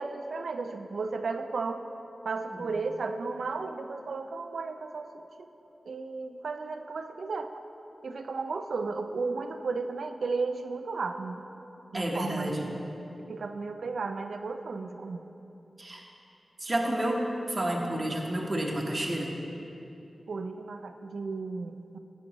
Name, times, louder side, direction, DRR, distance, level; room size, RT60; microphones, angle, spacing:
voice 1, 0.0-1.9 2.2-5.5 5.9-7.5 8.0-11.4 11.9-12.6 13.3-15.2 20.3-22.0, right 4 dB, 85° right, 7 dB, 0.4 m, -34 dB
voice 2, 11.9-12.7 15.8-16.0 16.6-19.3, right 1 dB, 35° right, -1 dB, 1.0 m, -30 dB
11.5 x 7.3 x 3.0 m, 2.9 s
wide cardioid pair, 90°, 0 cm